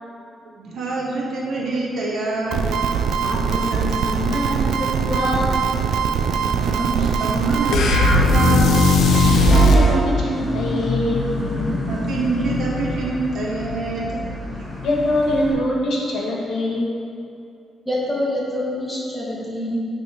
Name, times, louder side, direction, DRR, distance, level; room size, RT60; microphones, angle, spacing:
voice 1, 0.6-2.6 6.6-8.7 11.8-14.2 14.5-14.6, right 3 dB, 60° right, -2 dB, 0.9 m, -25 dB
sound 1, 2.5-9.7, right 6 dB, 80° right, 0.4 m, -22 dB
voice 2, 3.2-5.6 9.2-11.2 14.8-16.9, left 1 dB, 70° left, -2 dB, 1.3 m, -24 dB
sound 2, 7.7-9.9, left 2 dB, 90° left, 0.6 m, -15 dB
Vehicle horn car horn honking / Bus, 9.4-15.5, left 1 dB, 25° left, 1.5 m, -27 dB
voice 3, 17.9-19.9, left 1 dB, 5° left, -6 dB, 1.4 m, -25 dB
9.0 x 3.6 x 4.3 m, 2.6 s
wide cardioid pair, 160°, 0 cm